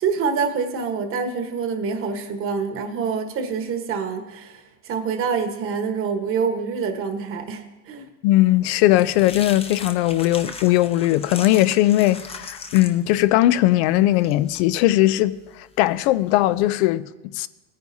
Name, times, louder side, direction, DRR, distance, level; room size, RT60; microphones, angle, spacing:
voice 1, 0.0-8.1, right 5 dB, 35° right, 1.2 m, -26 dB
voice 2, 8.2-17.5, left 15 dB, 65° left, 0.5 m, -19 dB
sound 1, 8.4-16.7, left 4 dB, 15° left, 0.7 m, -39 dB
17.0 x 9.6 x 2.7 m
supercardioid pair, 125°, 35 cm